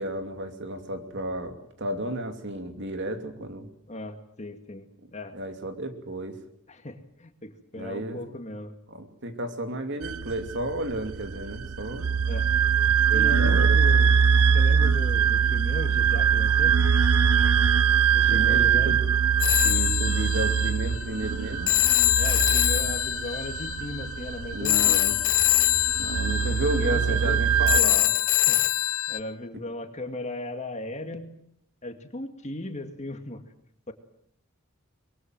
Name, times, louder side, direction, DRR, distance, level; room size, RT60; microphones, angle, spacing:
voice 1, 0.0-3.7 5.3-6.4 7.7-8.4 8.9-12.1 13.1-14.1 17.8-17.9 18.3-19.0 19.6-21.7 24.5-25.2 26.0-28.1, right 1 dB, 55° right, 7 dB, 2.7 m, -32 dB
voice 2, 3.9-5.4 6.7-8.8 12.3-12.5 13.1-14.1 14.5-16.8 18.1-19.0 22.2-25.0 26.4-27.4 28.5-28.6 29.1-31.3 31.8-33.4 33.9-34.0, left 1 dB, 35° left, 7 dB, 2.2 m, -37 dB
sound 1, 10.0-27.8, right 7 dB, 90° right, 0.9 m, -23 dB
Telephone, 19.4-29.2, left 16 dB, 70° left, 1.1 m, -24 dB
24.5 x 23.0 x 7.8 m, 0.69 s
head